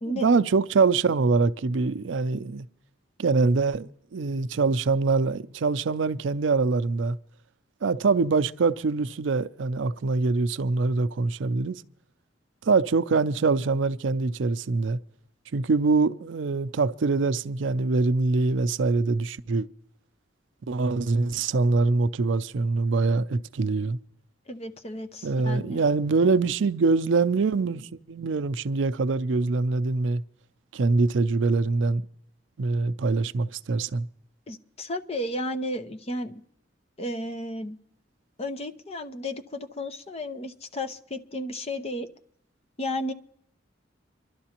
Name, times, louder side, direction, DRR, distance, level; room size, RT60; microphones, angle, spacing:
voice 1, 0.1-2.6 3.2-7.2 7.8-11.8 12.6-15.0 15.5-19.7 20.7-24.0 25.2-30.2 30.7-32.0 32.6-34.0, right 4 dB, 80° right, 0.5 m, -24 dB
voice 2, 24.5-25.8 34.5-36.4 37.0-37.8 38.4-42.1 42.8-43.1, left 1 dB, 35° left, 0.7 m, -33 dB
26.5 x 12.0 x 2.9 m
head